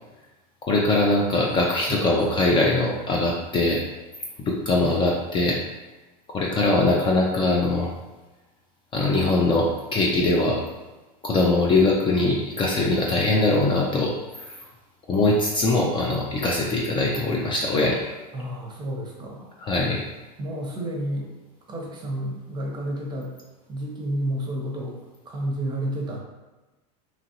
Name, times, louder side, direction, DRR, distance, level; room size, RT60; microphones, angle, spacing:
voice 1, 0.6-3.8 4.5-5.6 6.3-7.9 8.9-10.6 11.2-14.5 15.1-18.0 19.6-20.0, left 2 dB, 25° left, -2 dB, 0.4 m, -22 dB
voice 2, 1.9-2.5 4.8-5.1 18.3-19.5 20.4-21.3 21.7-23.3 23.7-25.0 25.3-26.2, right 1 dB, 20° right, -1 dB, 0.7 m, -31 dB
2.9 x 2.4 x 2.8 m, 1.1 s
supercardioid pair, 115°, 21 cm